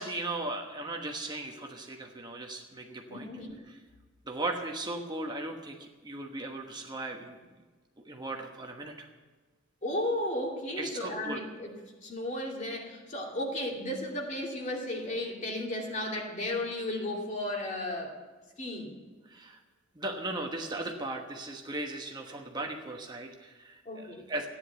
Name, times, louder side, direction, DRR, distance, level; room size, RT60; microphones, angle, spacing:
voice 1, 0.0-3.3 4.3-7.4 8.0-9.1 10.8-11.4 19.3-19.6 19.9-24.5, right 2 dB, 20° right, 2 dB, 1.2 m, -37 dB
voice 2, 3.1-3.6 9.8-18.2 18.6-18.9 23.8-24.3, left 1 dB, 40° left, 0 dB, 2.7 m, -34 dB
14.5 x 10.0 x 8.1 m, 1.3 s
head